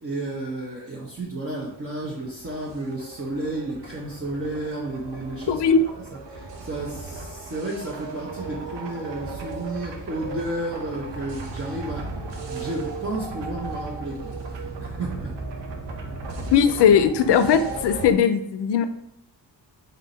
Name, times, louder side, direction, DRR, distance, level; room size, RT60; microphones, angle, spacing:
voice 1, 0.0-5.6 6.3-12.1 12.5-14.3 14.8-15.4 16.0-16.1, right 2 dB, 30° right, -4 dB, 0.8 m, -32 dB
sound 1, 2.1-18.1, right 3 dB, 75° right, 0.8 m, -36 dB
voice 2, 5.5-5.8 16.5-18.8, left 7 dB, 65° left, 10 dB, 0.5 m, -18 dB
3.6 x 2.7 x 4.0 m, 0.78 s
cardioid pair, 60°, 43 cm